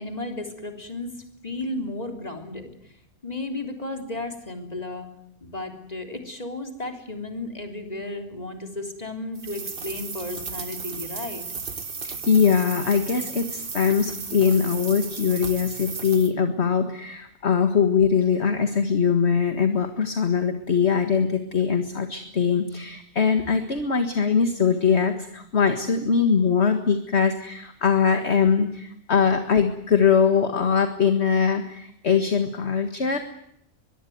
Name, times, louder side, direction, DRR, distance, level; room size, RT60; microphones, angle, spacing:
voice 1, 0.0-2.9 3.2-5.1 5.4-11.5, left 2 dB, 25° left, 4 dB, 3.6 m, -34 dB
sound 1, 9.3-16.3, right 5 dB, 40° right, 1.5 m, -35 dB
voice 2, 12.0-33.2, left 6 dB, 45° left, 7 dB, 2.0 m, -22 dB
23.0 x 22.5 x 9.4 m, 0.75 s
omnidirectional pair, 1.5 m